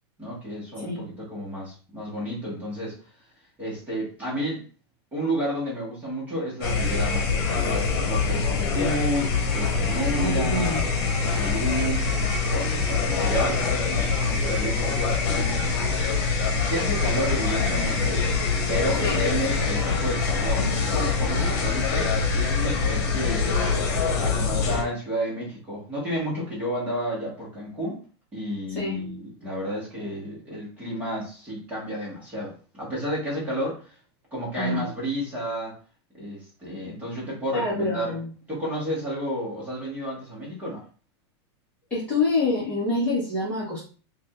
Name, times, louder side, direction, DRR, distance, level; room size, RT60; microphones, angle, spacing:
voice 1, 0.2-3.0 3.6-4.6 5.1-10.7 11.3-12.1 12.5-15.9 16.6-18.2 18.7-23.5 24.2-28.0 28.3-33.9 34.3-35.7 36.1-38.2 38.5-40.8, equal, 10° right, -6 dB, 1.4 m, -31 dB
sound 1, 6.6-24.8, left 4 dB, 50° left, 1.4 m, -24 dB
voice 2, 10.1-10.8 19.0-19.2 28.7-29.0 34.5-34.8 37.5-38.3 41.9-43.8, left 2 dB, 10° left, -9 dB, 1.2 m, -26 dB
4.8 x 2.6 x 2.5 m, 0.37 s
supercardioid pair, 175°, 14 cm